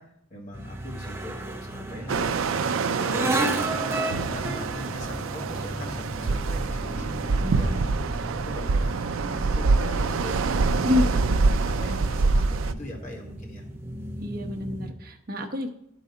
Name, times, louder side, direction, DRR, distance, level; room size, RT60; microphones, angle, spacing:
voice 1, 0.0-7.9 8.4-13.6, left 1 dB, 40° left, -1 dB, 1.7 m, -41 dB
sound 1, 0.5-14.9, right 1 dB, 15° right, 0.7 m, -34 dB
sound 2, 2.1-12.7, right 4 dB, 80° right, 0.4 m, -25 dB
voice 2, 7.4-7.8 10.8-11.1 14.2-15.7, left 2 dB, 45° right, 4 dB, 0.9 m, -28 dB
11.5 x 4.1 x 4.9 m, 0.73 s
head